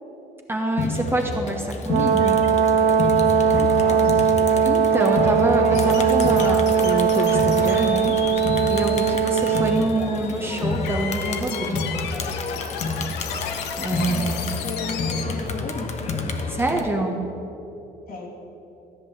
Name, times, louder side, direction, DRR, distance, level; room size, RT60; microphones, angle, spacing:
voice 1, 0.5-2.4 4.6-8.4 8.7-12.1 13.8-14.5 16.5-17.2, right 2 dB, 15° right, 2 dB, 1.1 m, -26 dB
Crowd, 0.8-16.8, left 3 dB, 40° left, 1.2 m, -29 dB
Brass instrument, 1.9-9.8, right 7 dB, 85° right, 0.8 m, -20 dB
voice 2, 3.5-4.5 14.0-16.1 18.1-18.3, left 4 dB, 60° left, -1 dB, 2.6 m, -34 dB
sound 1, 5.7-15.2, left 7 dB, 85° left, 1.0 m, -35 dB
14.0 x 5.4 x 9.4 m, 2.9 s
cardioid pair, 110°, 17 cm